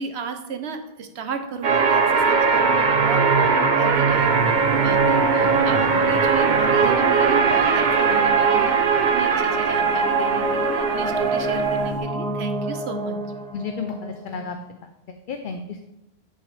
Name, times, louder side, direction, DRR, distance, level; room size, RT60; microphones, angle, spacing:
voice 1, 0.0-8.8 9.1-13.2, right 5 dB, 80° right, 7 dB, 1.1 m, -33 dB
sound 1, 1.6-11.9, right 5 dB, 50° right, 0.8 m, -20 dB
sound 2, 4.1-12.0, left 1 dB, 25° left, 2.2 m, -37 dB
sound 3, 9.5-14.5, right 2 dB, 5° left, 0.6 m, -28 dB
voice 2, 13.5-14.6 15.1-15.8, left 5 dB, 60° left, 6 dB, 0.7 m, -32 dB
10.5 x 5.5 x 3.3 m, 0.92 s
omnidirectional pair, 1.1 m